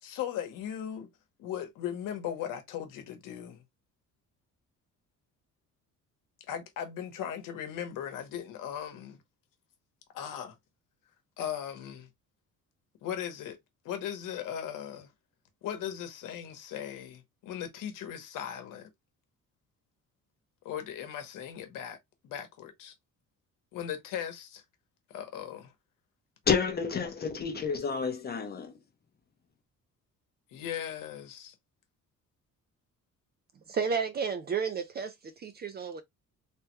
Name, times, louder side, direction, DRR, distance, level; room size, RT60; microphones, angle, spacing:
voice 1, 0.0-1.1 1.4-3.6 6.5-9.2 10.1-10.6 11.4-12.1 13.0-13.6 13.8-15.1 15.6-18.9 20.6-22.0 22.2-22.9 23.7-24.6 25.1-25.7 30.5-31.5, left 9 dB, 85° left, 1.0 m, -38 dB
voice 2, 26.5-28.7, left 6 dB, 30° left, 0.7 m, -29 dB
voice 3, 33.7-36.0, right 6 dB, 30° right, 0.4 m, -32 dB
3.3 x 2.2 x 2.9 m
cardioid pair, 145°, 31 cm